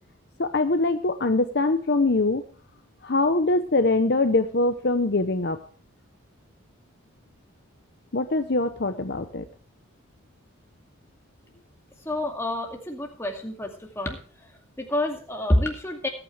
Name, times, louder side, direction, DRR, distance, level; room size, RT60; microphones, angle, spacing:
voice 1, 0.4-2.4 3.0-5.6 8.1-9.5, left 2 dB, 50° left, 9 dB, 0.8 m, -23 dB
voice 2, 12.1-13.7 14.0-14.2 14.8-16.1, left 1 dB, 10° left, 2 dB, 2.3 m, -27 dB
20.5 x 9.1 x 3.3 m, 0.43 s
head